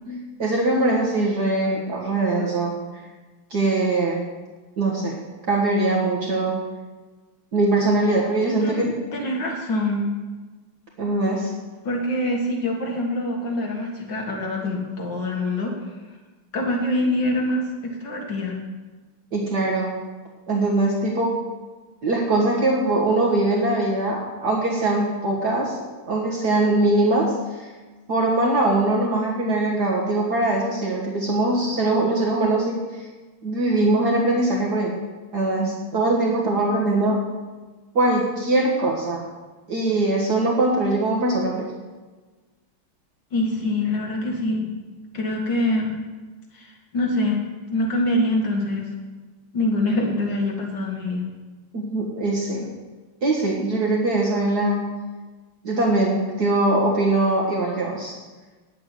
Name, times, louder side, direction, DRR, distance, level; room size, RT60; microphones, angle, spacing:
voice 1, 0.1-2.7 3.5-4.2 4.8-5.2 5.5-6.6 7.5-9.0 11.0-11.5 19.3-19.9 20.5-21.4 22.0-25.8 26.1-27.3 28.1-32.8 33.4-34.9 35.3-37.2 38.0-39.2 39.7-41.7 51.7-52.7 53.2-54.9 55.6-58.1, right 2 dB, 50° right, -3 dB, 2.0 m, -22 dB
voice 2, 8.5-10.1 11.8-15.7 16.5-18.6 43.3-44.7 45.1-46.0 46.5-47.4 47.7-48.9 49.5-51.2, left 1 dB, 60° left, 0 dB, 2.3 m, -25 dB
9.9 x 7.7 x 8.2 m, 1.3 s
omnidirectional pair, 2.3 m